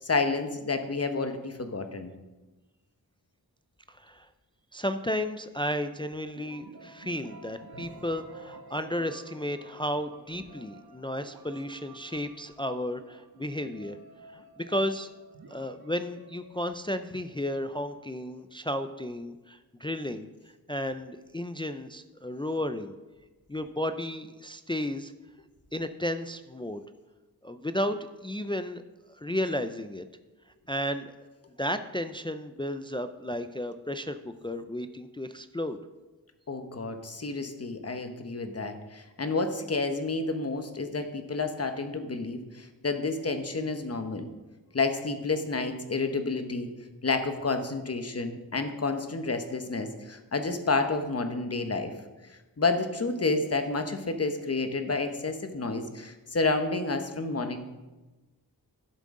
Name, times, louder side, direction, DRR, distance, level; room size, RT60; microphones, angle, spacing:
voice 1, 0.0-2.1 36.5-44.3 44.7-46.7 47.0-51.9 52.3-57.6, left 3 dB, 40° left, 7 dB, 1.0 m, -30 dB
voice 2, 3.9-4.3 4.7-14.0 14.3-15.1 15.5-20.3 20.7-22.9 23.5-25.1 25.7-26.8 27.4-28.8 29.1-30.0 30.7-31.1 31.6-35.8, left 1 dB, 15° left, 9 dB, 0.3 m, -33 dB
sound 1, 6.4-18.1, right 2 dB, 75° right, 1.4 m, -51 dB
12.0 x 7.6 x 3.7 m, 1.1 s
wide cardioid pair, 95°, 38 cm